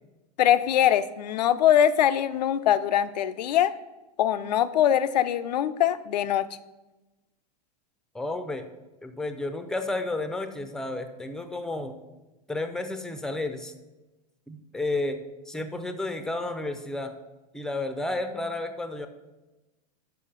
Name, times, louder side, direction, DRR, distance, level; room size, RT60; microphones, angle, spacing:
voice 1, 0.4-3.7 4.2-6.5, left 10 dB, 75° left, 13 dB, 0.5 m, -22 dB
voice 2, 8.1-8.7 9.0-12.0 12.5-13.7 14.5-17.1 17.5-19.1, left 2 dB, 5° left, 8 dB, 0.6 m, -32 dB
5.7 x 5.5 x 6.5 m, 1.1 s
hypercardioid pair, 115°, 21 cm